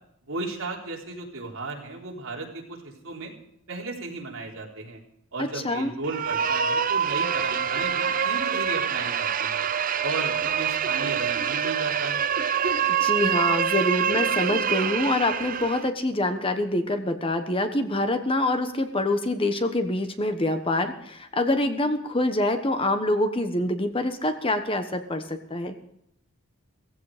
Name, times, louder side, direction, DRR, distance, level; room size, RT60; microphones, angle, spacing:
voice 1, 0.3-3.3 3.7-5.0 5.3-9.6 10.0-12.3, right 3 dB, 65° right, -1 dB, 4.0 m, -35 dB
voice 2, 5.4-5.9 13.0-25.8, left 1 dB, 25° left, 8 dB, 1.2 m, -25 dB
sound 1, 6.0-15.9, right 7 dB, 40° right, 0.6 m, -25 dB
16.5 x 16.0 x 5.0 m, 0.75 s
head